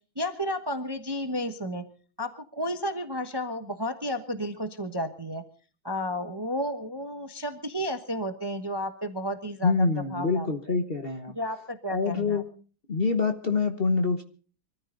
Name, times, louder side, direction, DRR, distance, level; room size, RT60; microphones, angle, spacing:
voice 1, 0.2-1.8 2.2-5.4 5.8-10.5 11.3-12.4, equal, 15° right, 8 dB, 1.0 m, -32 dB
voice 2, 9.6-11.3 11.9-12.5 12.9-14.2, left 4 dB, 35° left, 6 dB, 1.2 m, -25 dB
24.0 x 14.0 x 3.9 m, 0.39 s
omnidirectional pair, 2.1 m